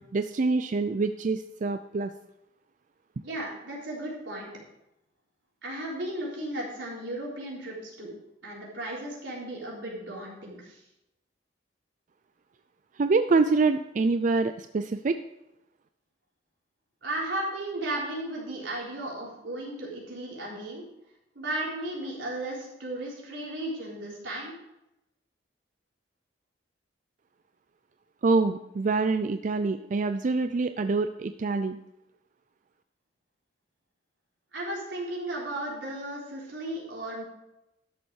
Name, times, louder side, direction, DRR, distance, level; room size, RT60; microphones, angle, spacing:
voice 1, 0.1-2.1 13.0-15.2 28.2-31.8, right 3 dB, 45° right, 9 dB, 0.4 m, -25 dB
voice 2, 3.2-4.6 5.6-8.1 8.4-10.8 17.0-20.9 21.3-24.5 34.5-37.2, right 1 dB, 85° right, -4 dB, 3.8 m, -35 dB
12.5 x 7.2 x 4.7 m, 0.89 s
head